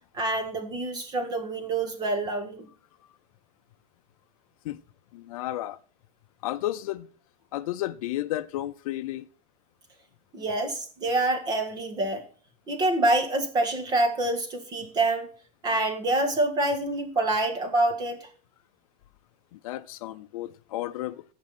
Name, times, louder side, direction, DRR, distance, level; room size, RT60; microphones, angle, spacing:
voice 1, 0.1-2.7 10.3-12.2 12.7-15.3 15.6-18.3, right 2 dB, 20° right, 1.8 m, -26 dB
voice 2, 5.1-5.8 6.4-7.1 7.5-9.3 19.5-21.2, left 14 dB, 60° left, 0.7 m, -32 dB
16.0 x 6.2 x 4.3 m
supercardioid pair, 165°, 20 cm